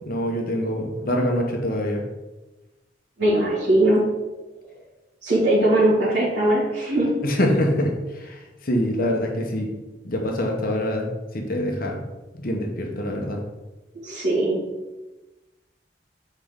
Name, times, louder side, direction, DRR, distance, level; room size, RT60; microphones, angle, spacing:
voice 1, 0.0-2.0 7.2-9.7 10.0-11.1 11.3-12.0 12.4-13.4, left 1 dB, 55° left, 1 dB, 0.9 m, -25 dB
voice 2, 3.2-4.0 5.2-7.1 14.0-14.6, right 1 dB, 75° right, -10 dB, 2.1 m, -20 dB
6.0 x 4.5 x 3.6 m, 1.1 s
head